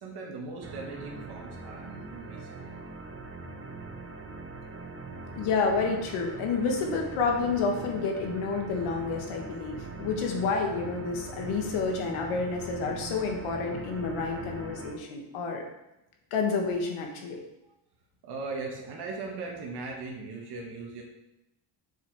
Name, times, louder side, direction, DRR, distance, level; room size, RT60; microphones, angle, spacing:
voice 1, 0.0-2.7 17.6-17.7 18.2-21.0, right 3 dB, 55° right, -1 dB, 1.6 m, -39 dB
sound 1, 0.6-15.0, right 3 dB, 25° right, 0.9 m, -41 dB
voice 2, 5.3-15.6 16.3-17.4, left 4 dB, 85° left, 2 dB, 1.6 m, -29 dB
6.8 x 4.4 x 4.7 m, 0.91 s
cardioid pair, 110°, 49 cm